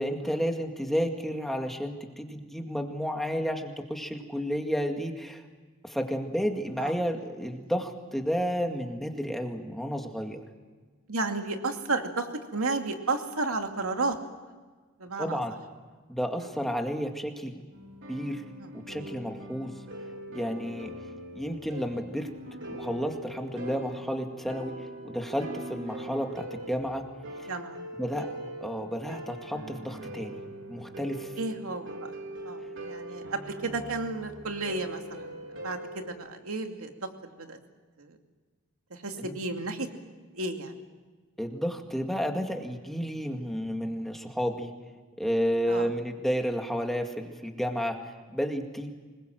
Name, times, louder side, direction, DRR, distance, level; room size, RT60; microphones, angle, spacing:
voice 1, 0.0-5.4 5.8-10.4 15.2-15.5 16.1-17.6 18.1-18.4 18.9-19.7 20.3-20.9 21.4-22.3 22.7-27.0 27.4-27.5 28.0-28.3 28.6-30.4 30.7-31.3 39.2-39.3 41.4-44.7 45.2-48.9, equal, ahead, 3 dB, 2.0 m, -31 dB
voice 2, 11.1-12.3 12.5-14.2 15.0-15.4 16.4-16.5 18.6-18.7 27.5-27.8 31.4-32.2 32.4-36.9 37.3-37.6 38.0-38.2 38.9-39.9 40.3-40.8 45.7-45.9, right 3 dB, 85° right, 4 dB, 2.5 m, -32 dB
sound 1, 17.7-36.1, right 1 dB, 60° right, 3.9 m, -42 dB
25.5 x 21.5 x 7.8 m, 1.4 s
head